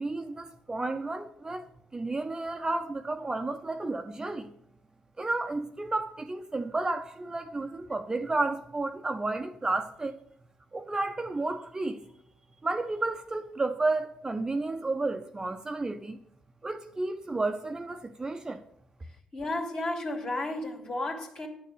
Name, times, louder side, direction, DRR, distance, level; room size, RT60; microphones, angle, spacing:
voice 1, 0.0-1.6 1.9-4.5 5.2-10.1 10.7-12.0 12.6-16.2 16.6-18.6, right 2 dB, 20° right, 0.8 m, -32 dB
voice 2, 19.3-21.5, left 2 dB, 35° left, 2.6 m, -33 dB
11.0 x 6.6 x 6.6 m
figure-of-eight pair, 40°, 3 cm